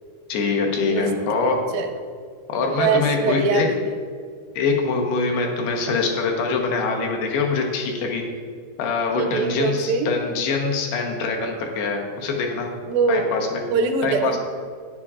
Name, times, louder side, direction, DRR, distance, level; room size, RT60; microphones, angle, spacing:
voice 1, 0.3-1.6 2.5-3.7 4.6-8.2 8.8-12.7 13.1-13.6 14.0-14.4, left 4 dB, 85° left, 1 dB, 3.1 m, -24 dB
voice 2, 0.9-1.9 2.8-3.9 9.2-10.1 12.9-13.3 13.7-14.4, right 4 dB, 80° right, 5 dB, 2.1 m, -23 dB
12.5 x 9.9 x 2.5 m, 2.1 s
omnidirectional pair, 4.5 m